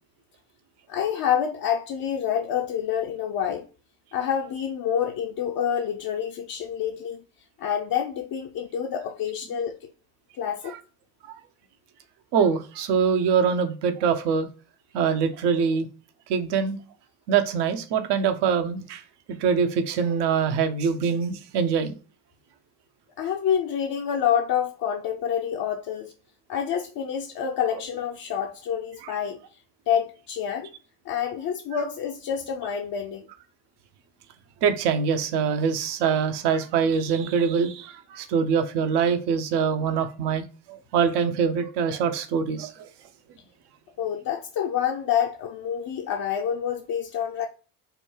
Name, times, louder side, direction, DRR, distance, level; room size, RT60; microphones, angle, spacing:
voice 1, 0.9-3.7 4.1-7.2 7.6-9.9 10.4-10.7 23.2-26.1 26.5-29.4 29.9-30.7 31.0-33.3 44.0-47.5, left 8 dB, 55° left, 0.8 m, -27 dB
voice 2, 12.3-14.5 14.9-15.9 16.3-16.8 17.3-19.0 19.4-21.9 34.6-42.9, right 6 dB, 65° right, 0.9 m, -24 dB
5.1 x 2.3 x 4.4 m
hypercardioid pair, 60°, 43 cm